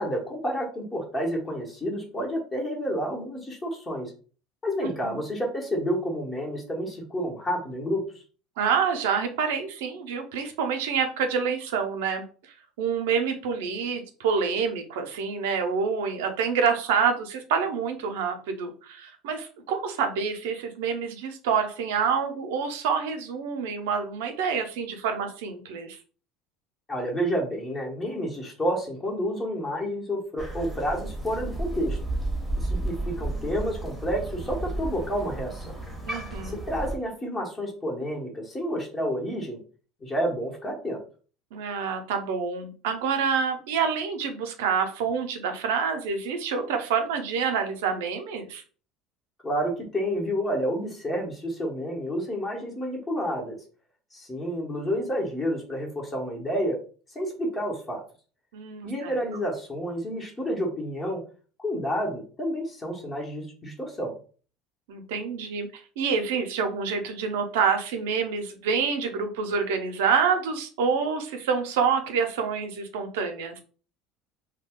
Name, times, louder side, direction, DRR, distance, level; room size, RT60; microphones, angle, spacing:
voice 1, 0.0-4.1 4.6-8.0 26.9-32.0 32.6-35.7 36.4-39.6 40.0-41.0 49.4-53.6 54.1-56.8 57.1-58.0 58.8-61.2 61.6-64.1, equal, 25° left, -1 dB, 1.1 m, -30 dB
voice 2, 4.8-5.2 8.6-12.2 12.8-26.0 36.1-36.6 41.5-48.6 58.5-59.2 64.9-65.7 66.0-73.6, right 6 dB, 85° right, 6 dB, 0.6 m, -27 dB
Crow, 30.4-37.0, right 2 dB, ahead, 1.0 m, -32 dB
2.2 x 2.2 x 3.6 m, 0.39 s
supercardioid pair, 105°, 0 cm